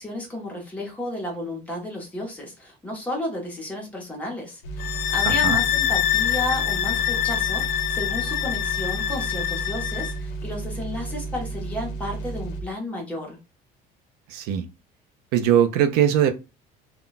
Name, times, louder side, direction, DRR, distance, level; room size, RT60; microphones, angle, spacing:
voice 1, 0.0-13.4, left 1 dB, 10° left, 0.7 m, -32 dB
sound 1, 4.6-12.7, right 3 dB, 80° left, 0.8 m, -33 dB
sound 2, 4.8-10.2, left 12 dB, 65° left, 0.4 m, -25 dB
voice 2, 5.2-5.6 14.3-14.7 15.3-16.3, right 10 dB, 75° right, 0.5 m, -20 dB
2.2 x 2.2 x 3.8 m
cardioid pair, 180°, 17 cm